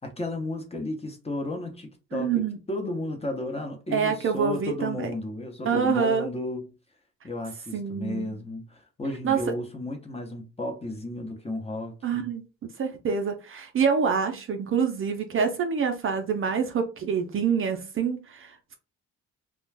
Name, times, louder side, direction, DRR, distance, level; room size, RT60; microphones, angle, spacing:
voice 1, 0.0-6.7 7.2-12.3, left 2 dB, 20° left, 0.8 m, -33 dB
voice 2, 2.1-2.6 3.9-5.1 5.7-6.3 7.7-8.4 9.2-9.4 12.0-12.5 12.8-18.8, right 6 dB, 45° right, 0.5 m, -26 dB
2.4 x 2.2 x 3.3 m
cardioid pair, 90°, 30 cm